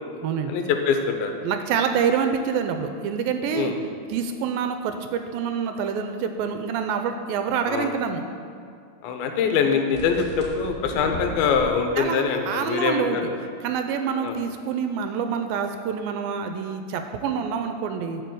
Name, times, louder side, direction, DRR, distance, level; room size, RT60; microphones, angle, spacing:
voice 1, 0.5-1.3 3.6-3.8 7.6-7.9 9.0-13.2 14.2-14.3, left 6 dB, 80° left, 5 dB, 2.5 m, -24 dB
voice 2, 1.4-3.7 4.1-8.2 12.0-13.2 13.6-18.2, right 7 dB, 80° right, 7 dB, 2.2 m, -26 dB
sound 1, 9.9-11.6, left 1 dB, 40° left, 1.1 m, -35 dB
12.0 x 4.5 x 7.7 m, 2.3 s
omnidirectional pair, 4.5 m